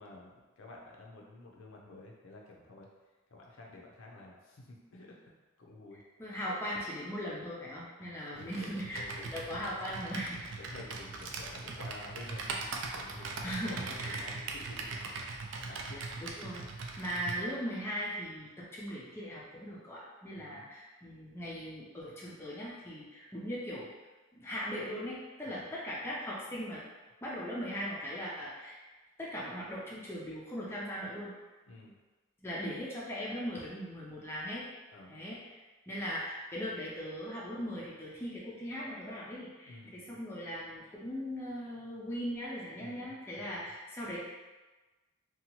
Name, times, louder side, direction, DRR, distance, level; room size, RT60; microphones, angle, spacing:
voice 1, 0.0-2.9 3.3-5.2 5.6-6.0 8.0-9.2 10.6-15.0 15.6-16.0 16.4-16.5 20.4-20.6 25.5-25.7 31.7-32.0 34.9-35.2 39.7-40.2 42.7-43.7, left 2 dB, 70° left, -1 dB, 0.5 m, -51 dB
voice 2, 6.2-10.5 13.4-14.3 15.9-16.6 17.0-23.9 24.3-26.8 27.2-28.8 29.2-31.3 32.4-34.6 35.1-35.6 35.9-44.2, equal, 10° left, -7 dB, 0.4 m, -39 dB
Computer keyboard, 8.4-17.4, right 3 dB, 60° right, 0.3 m, -40 dB
2.8 x 2.2 x 2.9 m, 1.2 s
head